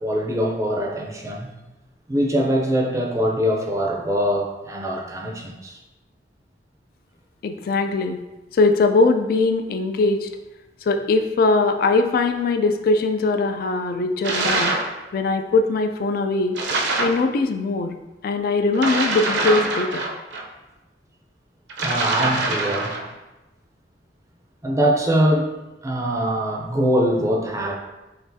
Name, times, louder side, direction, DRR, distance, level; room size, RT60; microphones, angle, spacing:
voice 1, 0.0-1.5 2.1-5.8 21.8-22.9 24.6-25.5 25.8-27.7, equal, 15° right, 0 dB, 0.5 m, -22 dB
voice 2, 7.4-8.2 8.5-10.3 10.9-14.7 15.1-16.6 17.0-17.9 18.2-20.1, left 3 dB, 50° left, 7 dB, 0.3 m, -21 dB
sound 1, 14.2-14.9 16.5-17.2 18.7-20.4 21.7-23.1, right 2 dB, 65° right, 0.6 m, -24 dB
5.9 x 2.4 x 2.6 m, 1.1 s
head